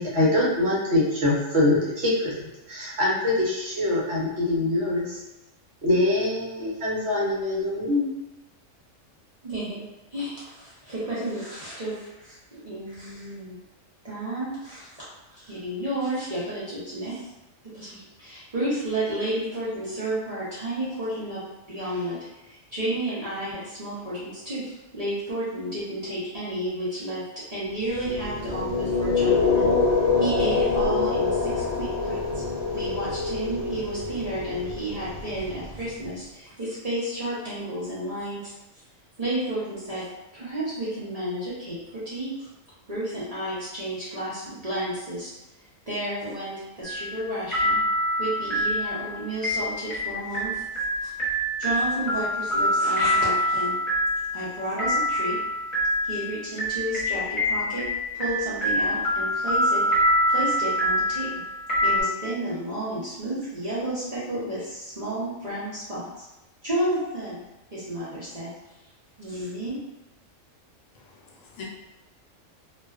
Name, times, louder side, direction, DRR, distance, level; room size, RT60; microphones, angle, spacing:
voice 1, 0.0-2.4 2.7-5.2 5.8-8.1, left 1 dB, 60° right, -6 dB, 0.9 m, -24 dB
voice 2, 9.4-9.8 10.1-13.5 14.0-15.0 15.3-17.2 17.7-21.4 21.7-22.2 22.5-29.7 30.2-32.4 32.7-38.5 39.2-40.1 40.3-42.5 42.9-45.3 45.9-47.8 48.2-50.6 51.0-51.1 51.6-53.8 54.3-55.4 56.0-57.8 58.1-59.8 60.3-61.3 61.8-66.2 66.6-67.4 67.7-68.5 69.2-69.8, right 1 dB, 45° right, -10 dB, 0.5 m, -31 dB
sound 1, 27.9-36.0, left 4 dB, 60° left, 0.9 m, -25 dB
sound 2, 46.8-47.3 47.5-62.0, equal, 25° left, 1.1 m, -25 dB
voice 3, 70.9-71.6, left 5 dB, 90° left, -1 dB, 1.0 m, -44 dB
2.4 x 2.2 x 2.3 m, 0.98 s
omnidirectional pair, 1.4 m